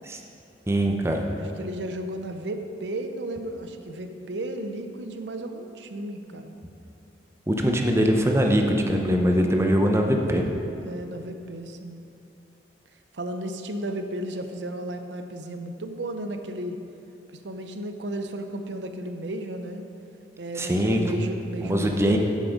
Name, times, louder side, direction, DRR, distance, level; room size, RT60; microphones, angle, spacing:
voice 1, 0.7-1.2 7.5-10.4 20.6-21.0 21.6-22.2, equal, 15° right, 2 dB, 0.7 m, -22 dB
voice 2, 1.4-6.6 10.8-12.0 13.1-16.8 17.4-19.8 20.4-22.2, right 1 dB, 80° right, 7 dB, 0.7 m, -34 dB
7.4 x 7.3 x 5.1 m, 2.8 s
head